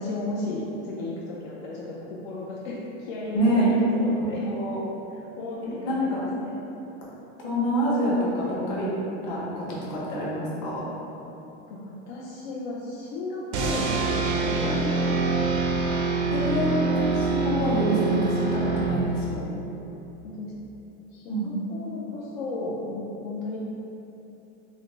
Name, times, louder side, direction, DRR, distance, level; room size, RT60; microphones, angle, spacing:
voice 1, 0.0-4.4 5.1-6.5 11.7-14.7 15.1-15.8 20.2-20.5 21.1-23.6, left 2 dB, 75° left, -6 dB, 0.6 m, -34 dB
voice 2, 3.3-3.7 4.4-4.8 5.9-6.2 7.4-8.9 9.2-10.9 14.6-14.7 16.3-19.5 21.3-21.5, equal, 45° left, -6 dB, 0.9 m, -26 dB
sound 1, 13.5-19.4, right 4 dB, 85° right, 0.6 m, -25 dB
3.7 x 2.1 x 3.2 m, 2.9 s
supercardioid pair, 150°, 33 cm